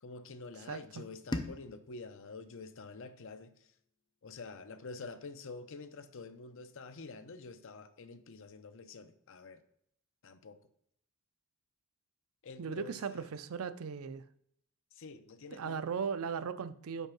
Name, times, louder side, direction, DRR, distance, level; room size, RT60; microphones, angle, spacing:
voice 1, 0.0-3.5 4.2-9.6 10.2-10.6 12.4-13.3 14.9-15.8, left 3 dB, 60° left, 10 dB, 0.6 m, -48 dB
voice 2, 0.7-1.0 12.6-14.2 15.5-17.1, right 6 dB, 70° right, 13 dB, 0.5 m, -37 dB
sound 1, 1.3-4.2, left 1 dB, 20° left, 0.6 m, -44 dB
5.5 x 4.6 x 5.9 m, 0.70 s
head